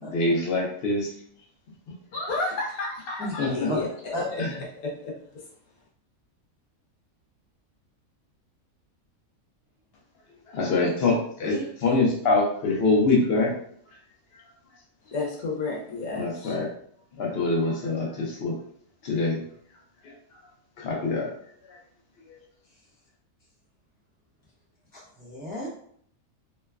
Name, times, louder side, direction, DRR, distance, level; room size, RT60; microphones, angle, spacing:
voice 1, 0.1-1.1 2.1-2.3 3.4-3.7 4.4-4.6 10.5-11.6 11.8-13.5 16.1-16.7 17.2-18.6 19.0-19.4 20.0-20.1 20.8-21.3 21.6-21.8 22.3-22.4, left 3 dB, 55° left, -2 dB, 0.8 m, -24 dB
voice 2, 2.3-3.9 4.3-4.4 4.8-5.1 15.1-16.5, left 3 dB, 85° left, -2 dB, 1.2 m, -31 dB
voice 3, 24.9-25.7, left 1 dB, 10° right, -7 dB, 0.5 m, -32 dB
3.0 x 2.1 x 2.3 m, 0.63 s
omnidirectional pair, 1.5 m